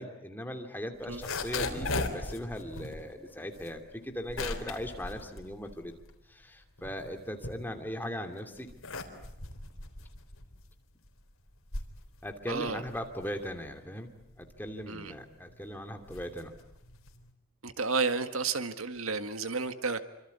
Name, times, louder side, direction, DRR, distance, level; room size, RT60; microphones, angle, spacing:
voice 1, 0.0-5.9 6.3-8.7 12.2-14.1 14.4-16.5, equal, 10° left, 5 dB, 2.7 m, -39 dB
sound 1, 1.0-6.3 6.6-8.1 8.5-17.3, left 3 dB, 70° left, 3.9 m, -39 dB
voice 2, 12.5-12.8 14.9-15.1 17.6-20.0, right 4 dB, 75° right, 9 dB, 1.8 m, -31 dB
28.0 x 25.5 x 8.4 m, 0.88 s
head